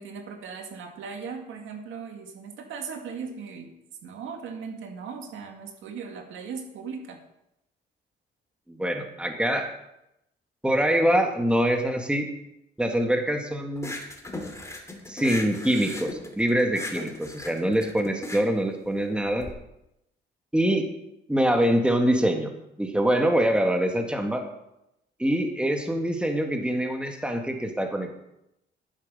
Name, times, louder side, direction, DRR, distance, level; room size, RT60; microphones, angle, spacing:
voice 1, 0.0-3.7 4.0-7.2, right 5 dB, 80° right, 4 dB, 2.2 m, -38 dB
voice 2, 8.7-9.7 10.6-12.3 12.8-13.9 15.1-19.5 20.5-20.9 21.3-22.5 22.8-24.4 25.2-28.2, right 1 dB, 5° right, 4 dB, 1.9 m, -24 dB
sound 1, 13.8-19.5, left 2 dB, 15° left, 2.5 m, -37 dB
11.5 x 9.8 x 5.6 m, 0.84 s
cardioid pair, 90°, 20 cm